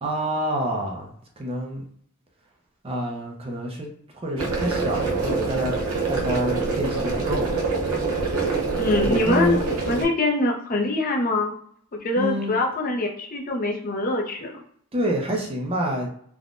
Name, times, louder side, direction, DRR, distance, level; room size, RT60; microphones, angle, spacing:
voice 1, 0.0-1.9 2.8-5.7 6.1-7.5 9.0-9.6 12.2-12.6 14.9-16.1, equal, 25° right, 0 dB, 0.5 m, -27 dB
sound 1, 4.4-10.0, right 3 dB, 80° right, 0.7 m, -25 dB
voice 2, 8.8-11.5 11.9-14.6, left 2 dB, 40° left, 1 dB, 0.5 m, -24 dB
3.4 x 2.1 x 2.5 m, 0.63 s
head